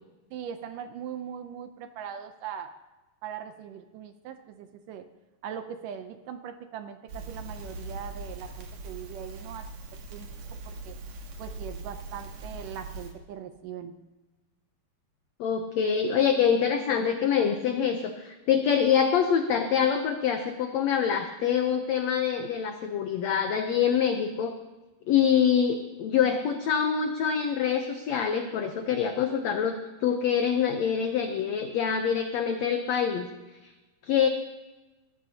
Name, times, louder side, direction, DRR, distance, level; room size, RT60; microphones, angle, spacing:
voice 1, 0.3-2.7 3.2-5.1 5.4-9.7 10.1-10.3 10.7-11.0 11.4-13.9, right 8 dB, 75° right, 8 dB, 2.1 m, -40 dB
Crackle, 7.1-13.1, right 3 dB, 55° right, 2.4 m, -41 dB
voice 2, 15.4-24.6 25.1-33.3 34.0-34.3, left 7 dB, 85° left, 6 dB, 1.5 m, -25 dB
21.0 x 14.5 x 2.8 m, 1.1 s
omnidirectional pair, 4.2 m